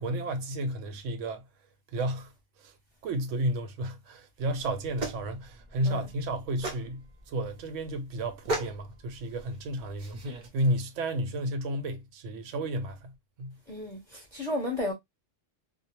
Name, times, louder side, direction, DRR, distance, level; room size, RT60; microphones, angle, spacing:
voice 1, 0.0-1.4 1.9-2.3 2.6-2.7 3.0-10.2 10.5-13.1 13.4-13.6, right 1 dB, 80° right, 0.9 m, -32 dB
sound 1, 4.4-10.5, right 2 dB, 45° right, 0.7 m, -38 dB
voice 2, 13.7-14.9, left 1 dB, 25° left, 0.7 m, -33 dB
2.2 x 2.0 x 2.8 m
omnidirectional pair, 1.3 m